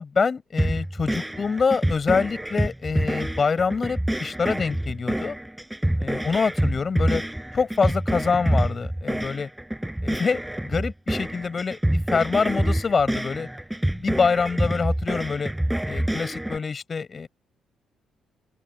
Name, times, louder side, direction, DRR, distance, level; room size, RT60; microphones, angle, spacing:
voice 1, 0.0-5.4 6.0-7.2 7.5-9.5 10.0-13.5 14.0-15.5 15.8-17.3, left 5 dB, 40° left, 7.7 m, -25 dB
sound 1, 0.6-16.6, right 1 dB, 5° right, 5.8 m, -27 dB
open air
cardioid pair, 90°, 0 cm